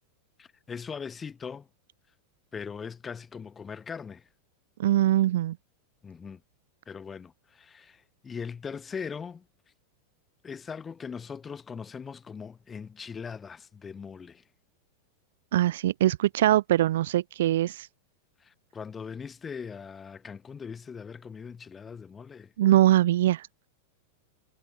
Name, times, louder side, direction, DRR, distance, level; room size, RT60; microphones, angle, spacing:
voice 1, 0.4-1.7 2.5-4.3 6.0-6.4 6.9-9.4 10.4-14.4 18.4-22.5, left 6 dB, 20° left, 4.5 m, -40 dB
voice 2, 4.8-5.6 15.5-17.9 22.6-23.5, right 13 dB, 55° right, 1.2 m, -22 dB
figure-of-eight pair, 90°, 0 cm